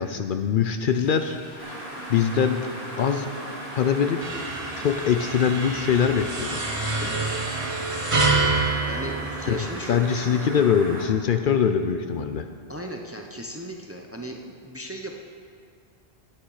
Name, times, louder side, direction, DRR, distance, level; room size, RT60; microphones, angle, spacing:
voice 1, 0.0-1.8 2.1-2.6 3.0-3.3 3.7-4.2 4.8-6.7 9.5-12.5, left 7 dB, 60° left, 7 dB, 0.7 m, -23 dB
Drill, 0.7-10.5, left 2 dB, 80° left, 1.7 m, -46 dB
sound 1, 1.6-11.1, right 1 dB, 60° right, 1.7 m, -37 dB
sound 2, 4.2-10.0, right 3 dB, 35° right, 1.0 m, -27 dB
voice 2, 7.0-7.3 8.9-10.6 12.7-15.2, right 1 dB, 15° right, 2 dB, 0.6 m, -36 dB
11.5 x 8.8 x 4.8 m, 2.2 s
omnidirectional pair, 1.0 m